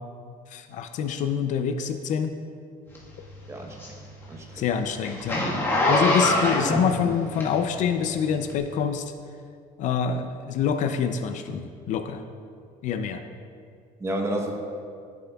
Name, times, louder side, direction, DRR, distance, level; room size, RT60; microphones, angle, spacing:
voice 1, 0.5-2.3 3.2-3.3 4.6-5.4 5.9-9.1 9.8-12.2 12.8-13.2, left 7 dB, 50° left, 8 dB, 0.4 m, -26 dB
Zipper (clothing), 2.9-7.9 8.4-8.6, left 1 dB, 15° left, 1.4 m, -24 dB
voice 2, 3.5-4.0 4.3-4.7 14.0-14.6, right 1 dB, 15° right, 2 dB, 0.9 m, -31 dB
13.5 x 7.1 x 2.3 m, 2.3 s
cardioid pair, 160°, 16 cm